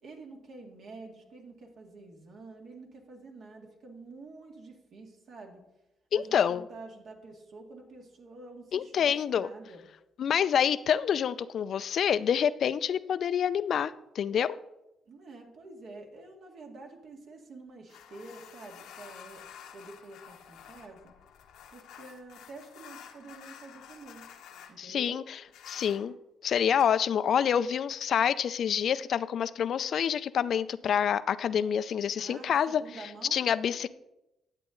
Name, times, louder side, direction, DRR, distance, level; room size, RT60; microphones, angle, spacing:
voice 1, 0.0-5.6 6.1-9.8 15.1-21.1 21.7-24.3 24.7-25.2 32.2-33.4, right 3 dB, 65° right, 1 dB, 2.0 m, -48 dB
voice 2, 6.1-6.6 8.7-9.5 10.2-14.6 24.8-25.2 25.7-26.1 26.4-32.8 33.3-33.9, left 8 dB, 60° left, 16 dB, 0.4 m, -27 dB
sound 1, 17.9-24.7 25.5-26.1 26.7-26.9, left 8 dB, 85° left, 1.0 m, -50 dB
10.5 x 8.1 x 3.8 m, 0.92 s
cardioid pair, 90°, 0 cm